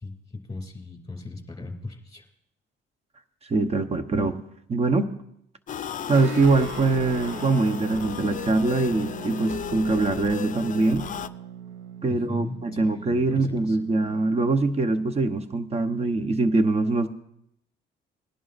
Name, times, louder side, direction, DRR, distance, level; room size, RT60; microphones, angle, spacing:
voice 1, 0.0-2.3 12.1-13.8, left 3 dB, 20° left, 4 dB, 2.6 m, -38 dB
voice 2, 3.5-4.4 4.7-5.1 6.1-11.0 12.0-17.1, right 3 dB, 30° right, 10 dB, 0.9 m, -23 dB
sound 1, 5.7-11.3, left 9 dB, 40° left, 0.5 m, -35 dB
Guitar, 6.1-15.2, right 8 dB, 80° right, 0.7 m, -41 dB
19.5 x 11.0 x 2.6 m, 0.74 s
cardioid pair, 90°, 20 cm